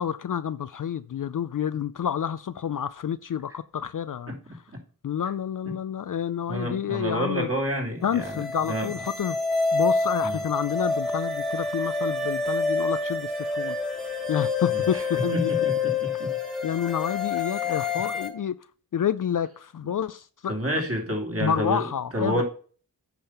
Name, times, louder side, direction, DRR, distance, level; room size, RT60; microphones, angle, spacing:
voice 1, 0.0-4.6 5.0-7.5 8.0-9.4 9.7-15.5 16.6-18.6 18.9-20.5 21.4-22.4, left 8 dB, 50° left, 0.5 m, -29 dB
voice 2, 6.5-8.9 10.2-10.4 14.7-15.0 15.3-16.3 20.5-21.9 22.1-22.4, equal, 35° right, 2.8 m, -29 dB
sound 1, 8.1-18.3, left 4 dB, ahead, 1.9 m, -27 dB
8.8 x 5.4 x 5.7 m
cardioid pair, 50°, 41 cm